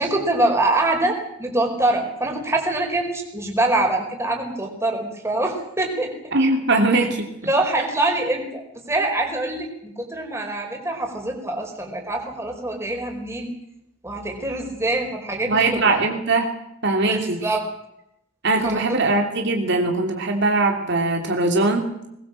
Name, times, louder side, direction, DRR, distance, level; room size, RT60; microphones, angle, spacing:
voice 1, 0.0-6.1 7.4-8.6 8.9-13.5 14.0-16.0 17.0-17.6 18.6-18.8, right 2 dB, 15° right, 2 dB, 4.7 m, -24 dB
voice 2, 6.3-7.3 15.5-16.5 16.8-17.6 18.4-22.1, right 2 dB, 55° right, 3 dB, 3.0 m, -21 dB
21.5 x 21.0 x 7.6 m, 0.81 s
head